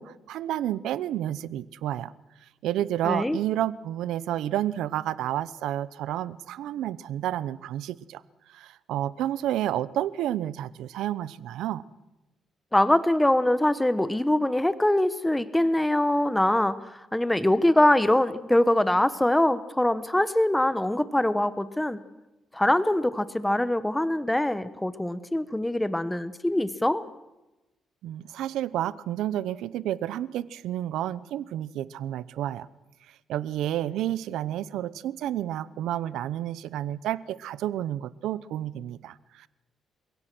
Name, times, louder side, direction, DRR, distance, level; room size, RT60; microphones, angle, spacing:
voice 1, 0.0-2.1 2.6-8.2 8.5-11.8 28.0-32.7 33.3-39.5, right 12 dB, 85° right, 18 dB, 0.8 m, -30 dB
voice 2, 3.0-3.4 12.7-22.0 22.5-27.0, left 1 dB, 10° left, 13 dB, 1.1 m, -23 dB
30.0 x 17.0 x 6.2 m, 1.0 s
cardioid pair, 90°, 0 cm